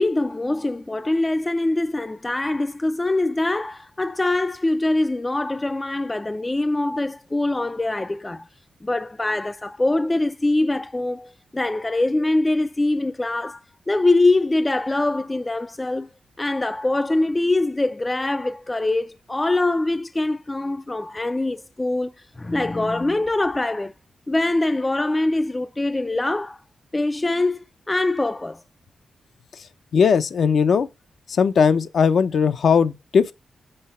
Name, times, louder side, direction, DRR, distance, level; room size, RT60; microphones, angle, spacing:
voice 1, 0.0-8.5 8.8-16.1 16.4-23.9 24.3-26.6 26.9-28.6, left 2 dB, 20° left, 0.4 m, -23 dB
voice 2, 29.9-30.9 31.3-33.3, left 6 dB, 65° left, 0.6 m, -18 dB
7.8 x 4.1 x 5.4 m
cardioid pair, 85°, 0 cm